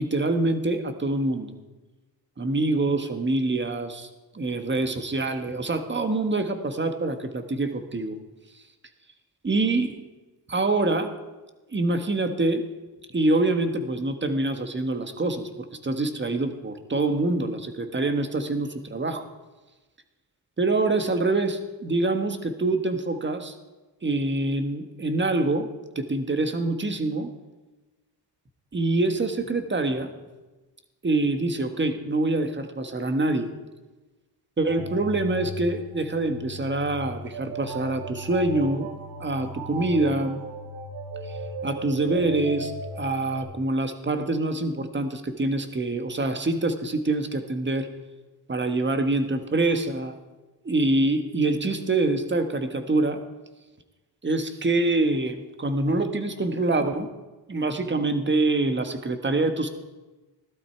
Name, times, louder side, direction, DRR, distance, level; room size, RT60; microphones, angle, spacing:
voice 1, 0.0-1.5 2.4-4.1 4.3-8.1 9.4-10.0 10.5-11.1 11.7-12.7 13.1-19.3 20.6-23.6 24.0-27.3 28.7-30.1 31.0-33.5 34.6-38.9 39.2-40.4 41.3-41.4 41.6-47.9 48.5-50.2 50.6-53.2 54.2-57.1 57.5-59.7, right 2 dB, 25° right, 7 dB, 1.5 m, -25 dB
sound 1, 34.7-43.4, right 1 dB, 90° right, 1.9 m, -37 dB
15.5 x 12.5 x 4.6 m, 1.2 s
cardioid pair, 90°, 41 cm